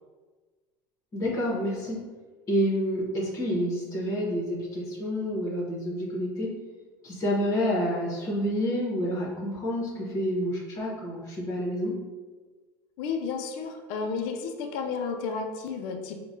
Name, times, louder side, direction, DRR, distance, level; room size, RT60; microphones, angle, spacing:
voice 1, 1.1-2.0 2.5-6.6 7.0-12.0, equal, 35° left, -4 dB, 1.0 m, -28 dB
voice 2, 13.0-16.3, left 5 dB, 70° left, 5 dB, 0.4 m, -32 dB
4.7 x 2.2 x 2.6 m, 1.4 s
supercardioid pair, 110°, 9 cm